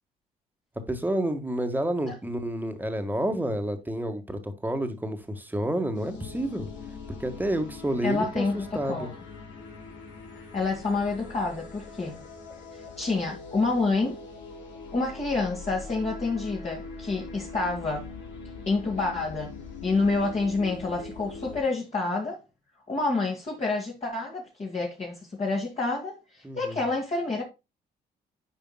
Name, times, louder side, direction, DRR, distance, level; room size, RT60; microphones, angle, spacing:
voice 1, 0.9-6.7 7.1-9.1 26.4-26.8, right 1 dB, 10° right, 1.6 m, -29 dB
sound 1, 5.9-21.6, left 4 dB, 75° left, 2.2 m, -42 dB
voice 2, 8.0-9.1 10.5-12.2 13.0-14.2 14.9-18.1 18.7-19.5 19.8-22.4 22.9-27.4, left 3 dB, 35° left, 2.2 m, -28 dB
9.4 x 5.0 x 2.3 m
supercardioid pair, 65°, 19 cm